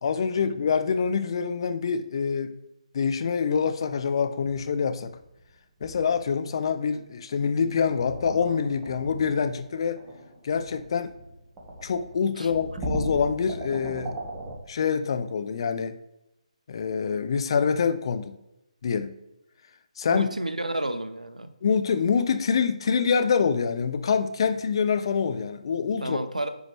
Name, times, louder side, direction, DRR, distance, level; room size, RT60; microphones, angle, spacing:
voice 1, 0.0-2.5 2.9-5.2 5.8-10.0 10.4-11.1 11.8-14.1 14.7-16.0 16.7-18.4 18.8-19.1 20.0-20.3 21.6-26.3, left 6 dB, 45° left, 0.6 m, -25 dB
sound 1, 4.4-5.5 5.8-6.6 7.7-14.6, right 1 dB, 15° right, 1.5 m, -38 dB
voice 2, 20.1-21.5 26.0-26.5, right 1 dB, 90° right, 0.8 m, -31 dB
9.9 x 4.8 x 3.3 m
figure-of-eight pair, 145°, 4 cm